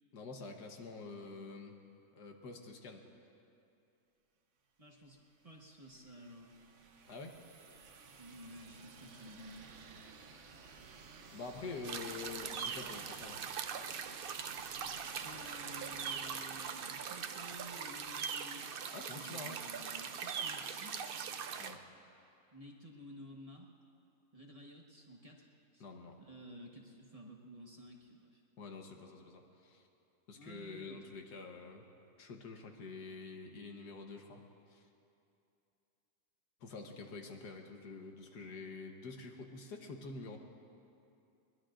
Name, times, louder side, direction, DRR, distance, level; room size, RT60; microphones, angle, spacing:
voice 1, 0.1-1.7 2.1-3.0 7.1-7.4 11.3-13.4 18.9-19.6 21.6-21.8 25.8-26.1 28.6-29.9 30.3-31.8 32.2-34.4 34.7-34.8 36.6-40.4, left 4 dB, 85° left, 3 dB, 1.7 m, -47 dB
voice 2, 4.8-5.2 5.4-6.5 8.2-9.7 15.1-18.7 19.1-21.2 22.5-23.7 24.3-25.5 25.7-25.9 26.2-28.4 30.3-31.0, equal, 25° right, -2 dB, 1.2 m, -53 dB
sound 1, 5.0-18.7, right 4 dB, 55° right, 1.1 m, -56 dB
sound 2, 11.8-21.8, right 7 dB, 80° right, 0.5 m, -41 dB
22.0 x 20.5 x 2.5 m, 2.7 s
omnidirectional pair, 1.7 m